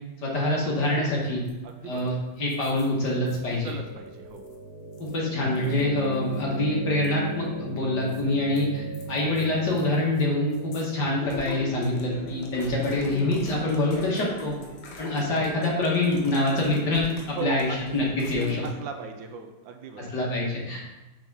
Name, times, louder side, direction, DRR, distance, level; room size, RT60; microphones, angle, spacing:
voice 1, 0.2-1.4 1.8-3.7 5.0-14.5 15.0-18.6 20.0-20.8, left 2 dB, 60° left, -4 dB, 2.1 m, -26 dB
sound 1, 1.4-1.7 2.0-2.1 2.4-3.7 4.2-4.6 4.9-5.2 5.6-6.4 7.0-7.1 8.1-10.2 10.5-10.8 11.2-18.7, left 5 dB, 75° left, 1.7 m, -41 dB
voice 2, 1.6-2.2 3.6-4.4 17.3-17.8 18.6-20.2, right 6 dB, 75° right, 5 dB, 1.3 m, -37 dB
sound 2, 3.1-15.2, right 2 dB, 55° right, 2.0 m, -39 dB
6.1 x 3.7 x 5.4 m, 1.1 s
omnidirectional pair, 2.2 m